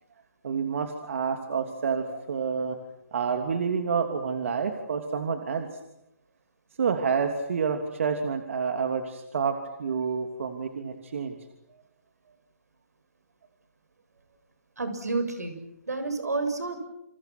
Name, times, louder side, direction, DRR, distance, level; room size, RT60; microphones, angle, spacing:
voice 1, 0.4-2.8 3.1-5.7 6.8-11.4, right 6 dB, 55° right, 5 dB, 3.0 m, -28 dB
voice 2, 14.8-16.9, right 3 dB, 85° right, 8 dB, 7.4 m, -30 dB
29.5 x 28.0 x 6.2 m, 0.85 s
hypercardioid pair, 150°, 8 cm